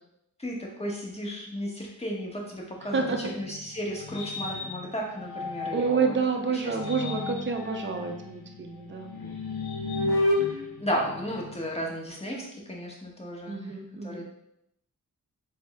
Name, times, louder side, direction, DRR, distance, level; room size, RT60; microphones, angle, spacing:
voice 1, 0.4-6.2 6.5-7.2 10.4-14.2, equal, 15° left, -2 dB, 1.1 m, -34 dB
voice 2, 2.9-3.3 5.7-9.1 13.5-14.2, right 5 dB, 30° right, 4 dB, 0.5 m, -28 dB
sound 1, 3.0-6.1 6.6-11.8, left 2 dB, 90° left, 0.6 m, -32 dB
4.1 x 2.1 x 3.5 m, 0.80 s
cardioid pair, 50°, 37 cm